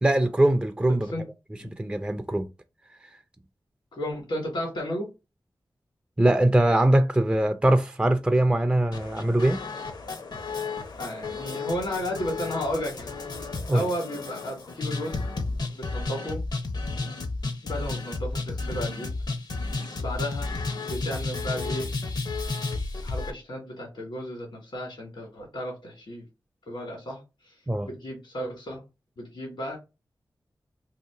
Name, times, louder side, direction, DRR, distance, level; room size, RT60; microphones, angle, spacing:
voice 1, 0.0-1.1 1.6-2.5 6.2-9.6 13.7-13.9 27.7-27.9, right 1 dB, 15° right, 0.3 m, -22 dB
voice 2, 3.9-5.1 11.0-13.1 13.7-16.4 17.6-19.1 20.0-21.9 23.0-26.3 26.7-27.2 27.5-27.6 27.8-28.8 29.2-29.8, equal, 80° left, 1.4 m, -33 dB
sound 1, 8.9-23.3, left 3 dB, 65° left, 0.6 m, -32 dB
2.8 x 2.5 x 3.6 m
cardioid pair, 50°, 8 cm